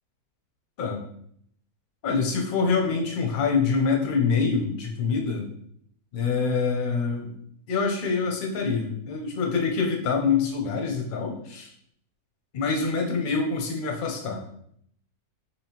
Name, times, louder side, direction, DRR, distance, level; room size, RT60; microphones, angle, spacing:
voice 1, 2.0-5.5 6.1-7.3 7.7-11.7 12.5-14.5, left 5 dB, 50° left, 1 dB, 0.6 m, -25 dB
4.7 x 2.9 x 2.9 m, 0.68 s
omnidirectional pair, 1.6 m